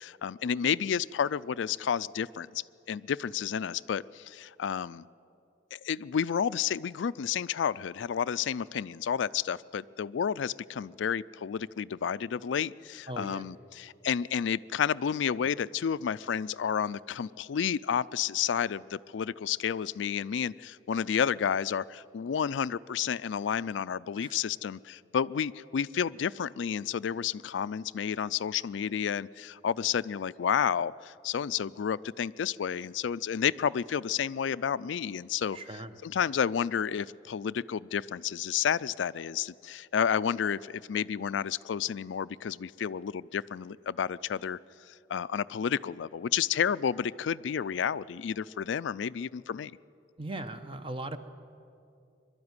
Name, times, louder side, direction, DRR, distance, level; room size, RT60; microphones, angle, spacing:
voice 1, 0.0-5.0 5.7-35.6 36.0-44.6 44.9-49.8, left 7 dB, 90° left, 17 dB, 0.4 m, -31 dB
voice 2, 13.1-13.5 24.2-24.3 35.5-35.9 50.2-51.2, right 2 dB, 30° right, 10 dB, 0.9 m, -38 dB
23.0 x 12.0 x 9.7 m, 2.6 s
head